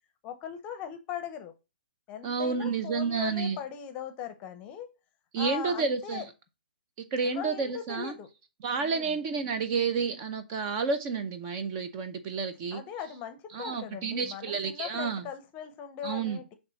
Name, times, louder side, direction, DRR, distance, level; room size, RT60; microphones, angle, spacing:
voice 1, 0.2-1.5 2.1-4.9 5.4-6.3 7.2-8.3 8.8-9.2 12.7-16.5, left 9 dB, 25° left, 0.7 m, -39 dB
voice 2, 2.2-3.6 5.3-6.2 7.1-8.1 8.6-12.8 13.5-15.2 16.0-16.4, right 5 dB, 30° right, 0.7 m, -30 dB
6.9 x 3.5 x 4.0 m
hypercardioid pair, 150°, 5 cm